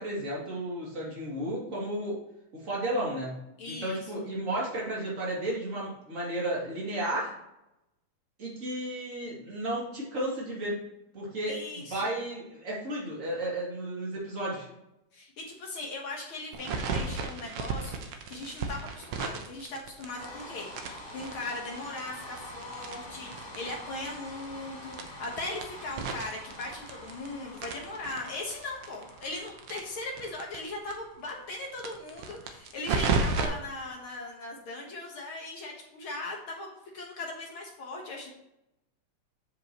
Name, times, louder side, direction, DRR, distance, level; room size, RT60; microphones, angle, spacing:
voice 1, 0.0-2.2 2.5-3.4 3.6-7.3 8.4-10.8 11.1-11.6 11.9-14.7, right 1 dB, 25° right, -5 dB, 2.5 m, -33 dB
voice 2, 3.6-4.0 11.5-12.1 15.1-38.3, left 2 dB, 55° left, -1 dB, 1.6 m, -39 dB
sound 1, 16.5-20.4 20.7-23.8 24.0-24.1 24.4-24.5 24.9-27.3 27.6-30.6 30.9-31.0 31.2-31.3 31.7-33.5, right 4 dB, 75° right, 1.4 m, -33 dB
sound 2, 20.1-34.2, left 1 dB, 40° left, 3.5 m, -47 dB
8.2 x 7.4 x 3.0 m, 0.86 s
omnidirectional pair, 3.7 m